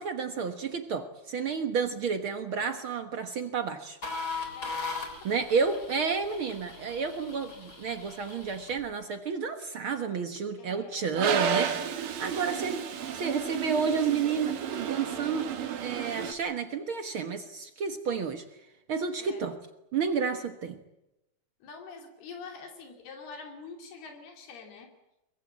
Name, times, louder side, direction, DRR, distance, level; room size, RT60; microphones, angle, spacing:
voice 1, 0.0-4.0 5.2-11.8 12.2-12.8 13.1-15.5 15.8-18.4 18.9-19.6 19.9-20.8, right 5 dB, 80° right, 7 dB, 1.1 m, -31 dB
sound 1, 4.0-8.9, left 4 dB, 25° left, 3.7 m, -39 dB
voice 2, 10.6-11.2 12.3-13.1 19.2-19.5 21.6-24.9, left 4 dB, 75° left, 3 dB, 4.7 m, -46 dB
Toilet flush, 11.1-16.3, right 8 dB, 60° right, 3.2 m, -32 dB
23.5 x 22.0 x 8.6 m, 0.92 s
omnidirectional pair, 4.6 m